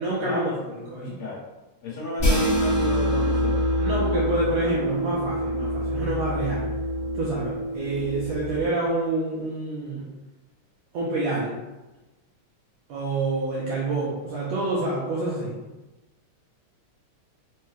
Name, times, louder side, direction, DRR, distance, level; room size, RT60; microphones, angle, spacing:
voice 1, 0.0-1.2 3.8-6.6 7.1-10.1 10.9-11.5 12.9-15.5, right 2 dB, 75° right, -5 dB, 1.5 m, -28 dB
voice 2, 1.0-1.4 1.8-3.6, left 2 dB, 60° left, -9 dB, 2.0 m, -32 dB
sound 1, 2.2-8.7, equal, 45° left, 0.8 m, -25 dB
5.4 x 2.2 x 3.2 m, 1.1 s
omnidirectional pair, 3.6 m